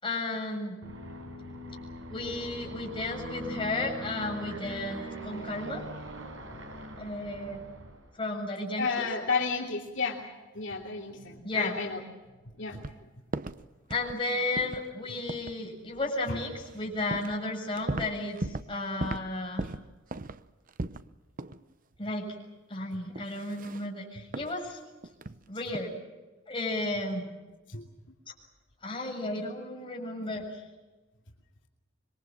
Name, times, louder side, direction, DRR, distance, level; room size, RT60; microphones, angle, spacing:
voice 1, 0.0-0.8 2.1-5.8 7.0-7.6 8.2-9.1 11.4-11.8 13.9-19.7 22.0-22.3 22.7-24.8 25.5-25.9 26.5-27.2 28.8-30.6, left 2 dB, 25° left, -1 dB, 7.3 m, -33 dB
Aircraft, 0.8-8.1, equal, 70° right, 5.2 m, -41 dB
voice 2, 8.8-10.2 10.5-12.0 12.6-12.8 27.7-27.8, left 4 dB, 65° left, -1 dB, 3.0 m, -31 dB
sound 1, 12.7-13.0 13.3-13.6 13.9-14.2 14.6-14.9 15.3-15.6 16.6-16.7 17.1-17.4 17.7-18.7 19.0-19.3 19.6-21.1 21.4-21.6 21.9-22.0 23.1-23.9 24.3-24.5 25.0-25.4 25.7-25.8, right 2 dB, 45° right, 0.8 m, -37 dB
26.5 x 23.0 x 7.6 m, 1.2 s
head